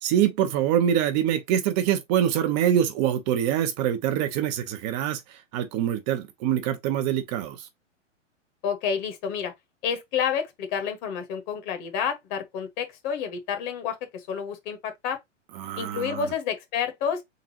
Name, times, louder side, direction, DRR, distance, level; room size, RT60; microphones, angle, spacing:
voice 1, 0.0-7.7 15.5-16.3, right 10 dB, 35° right, 0.7 m, -25 dB
voice 2, 8.6-9.5 9.8-15.2 15.8-17.2, left 7 dB, 40° left, 1.4 m, -29 dB
3.9 x 3.7 x 2.8 m
hypercardioid pair, 110°, 38 cm